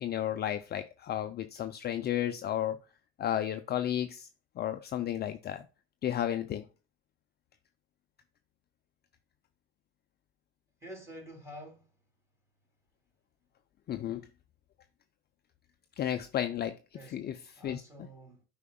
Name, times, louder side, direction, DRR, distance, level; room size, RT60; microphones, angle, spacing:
voice 1, 0.0-2.8 3.2-4.3 4.6-5.7 6.0-6.6 13.9-14.2 16.0-16.8 17.1-17.4 17.6-17.8, left 11 dB, 35° left, 0.6 m, -32 dB
voice 2, 10.8-11.9 16.9-17.2 17.6-18.4, right 1 dB, 10° right, 3.2 m, -48 dB
8.2 x 5.1 x 2.3 m
supercardioid pair, 95°, 30 cm